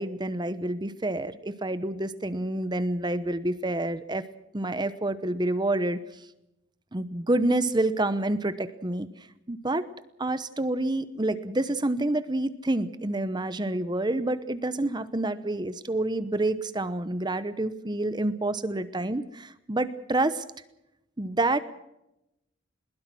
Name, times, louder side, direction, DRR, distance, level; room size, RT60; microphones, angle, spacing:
voice 1, 0.0-4.2 4.5-6.0 6.9-9.1 9.5-9.9 10.2-20.4 21.2-21.6, right 2 dB, 25° right, 13 dB, 0.9 m, -28 dB
21.5 x 21.0 x 6.2 m, 0.86 s
head